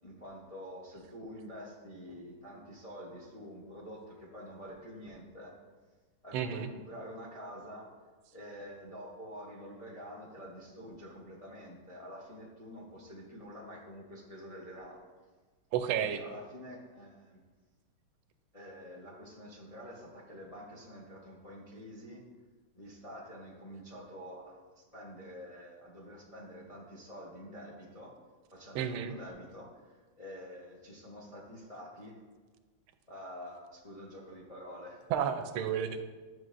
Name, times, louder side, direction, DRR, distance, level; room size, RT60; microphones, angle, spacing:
voice 1, 0.0-5.6 6.2-7.9 8.3-15.0 15.9-17.4 18.5-22.2 22.7-28.2 28.5-32.2 33.1-35.0, equal, 35° left, -4 dB, 0.5 m, -47 dB
voice 2, 6.3-6.7 15.7-16.2 28.7-29.1 35.1-36.0, right 8 dB, 85° right, 9 dB, 1.4 m, -31 dB
10.5 x 6.0 x 2.5 m, 1.4 s
omnidirectional pair, 2.3 m